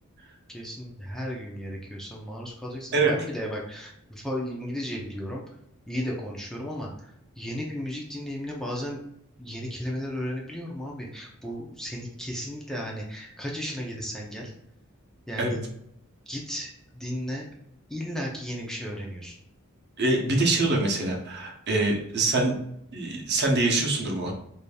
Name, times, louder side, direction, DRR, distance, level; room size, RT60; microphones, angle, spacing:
voice 1, 0.5-5.4 5.9-9.0 9.4-14.5 15.3-15.6 16.3-17.5 17.9-19.3, equal, ahead, -2 dB, 0.5 m, -34 dB
voice 2, 20.0-22.6 22.9-24.3, right 2 dB, 50° right, 1 dB, 0.8 m, -24 dB
4.9 x 2.7 x 2.3 m, 0.76 s
head